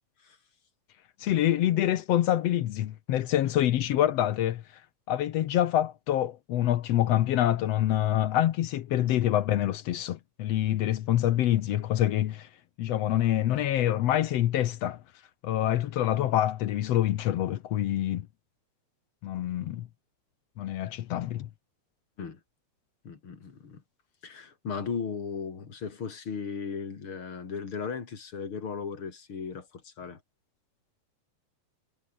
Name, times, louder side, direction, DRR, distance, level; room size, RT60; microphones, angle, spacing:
voice 1, 1.2-4.6 5.1-12.5 12.8-15.0 15.4-18.3 19.2-19.9 20.6-21.5, left 12 dB, 65° left, 1.9 m, -26 dB
voice 2, 23.0-23.8 24.2-30.2, left 5 dB, 45° left, 3.6 m, -36 dB
omnidirectional pair, 3.3 m